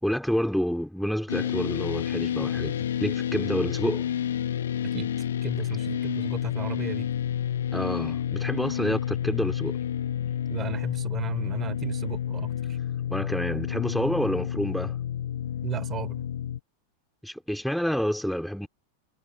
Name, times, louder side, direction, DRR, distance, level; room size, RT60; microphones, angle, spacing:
voice 1, 0.0-4.1 7.7-9.8 13.1-15.0 17.2-18.7, equal, ahead, 4.3 m, -28 dB
sound 1, 1.3-16.6, left 10 dB, 65° left, 2.0 m, -30 dB
voice 2, 5.4-7.1 10.5-12.8 15.6-16.2, right 9 dB, 25° right, 5.2 m, -35 dB
figure-of-eight pair, 90°, 0 cm